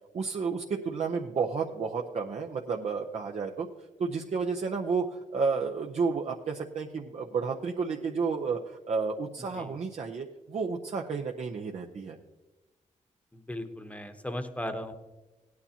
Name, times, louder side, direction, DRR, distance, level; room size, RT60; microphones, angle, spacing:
voice 1, 0.1-3.7 4.0-12.2, right 5 dB, 55° right, 1 dB, 0.7 m, -31 dB
voice 2, 13.3-14.9, left 1 dB, 10° left, 7 dB, 1.0 m, -36 dB
17.0 x 9.6 x 2.9 m, 1.1 s
cardioid pair, 95°, 13 cm